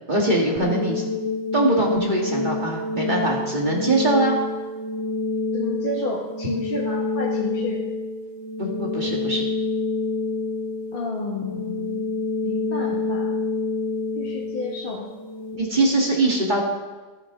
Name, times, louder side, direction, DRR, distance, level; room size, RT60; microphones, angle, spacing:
voice 1, 0.1-1.0 1.5-4.3 8.6-9.5 15.5-16.6, right 1 dB, 30° right, -2 dB, 1.9 m, -22 dB
sound 1, 0.6-15.6, left 3 dB, 15° left, 2.9 m, -27 dB
voice 2, 5.5-7.8 10.9-12.1 12.4-13.4 14.2-15.1, left 2 dB, 35° left, -4 dB, 1.5 m, -31 dB
13.5 x 13.0 x 3.7 m, 1.3 s
omnidirectional pair, 1.8 m